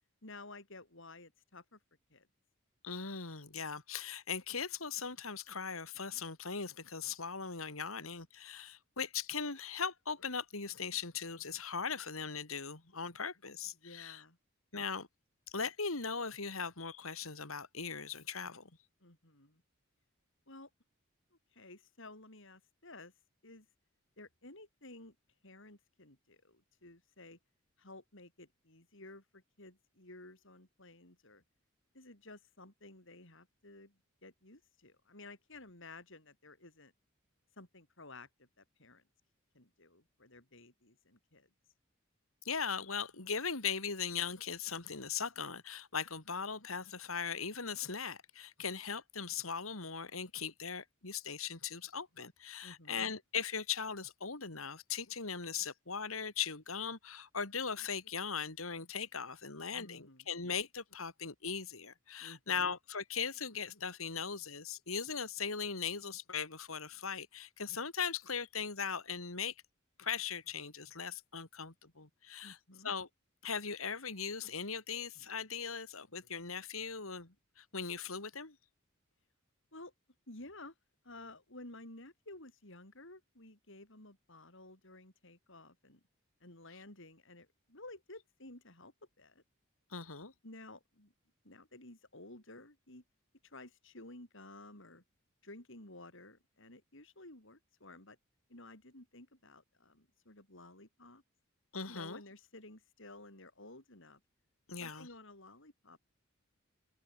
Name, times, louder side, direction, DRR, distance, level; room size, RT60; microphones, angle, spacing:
voice 1, 0.2-1.8 2.1-2.3 13.8-14.4 19.0-19.6 20.5-20.7 21.3-23.1 23.4-23.7 24.2-25.2 25.4-27.4 27.8-31.4 31.9-36.9 37.6-39.0 39.5-41.5 52.6-53.1 59.7-60.3 62.2-62.8 72.4-72.9 79.7-79.9 80.3-80.7 81.0-86.0 86.4-89.4 90.4-91.1 91.4-93.0 93.4-95.0 95.4-98.2 98.5-101.2 101.9-104.2 104.8-106.0, left 2 dB, 65° left, 7.8 m, -54 dB
voice 2, 2.8-14.2 14.7-15.1 15.5-18.7 42.4-69.5 70.0-72.6 72.8-73.1 73.4-78.6 89.9-90.3 101.7-102.2 104.7-105.1, left 6 dB, 90° left, 3.3 m, -39 dB
head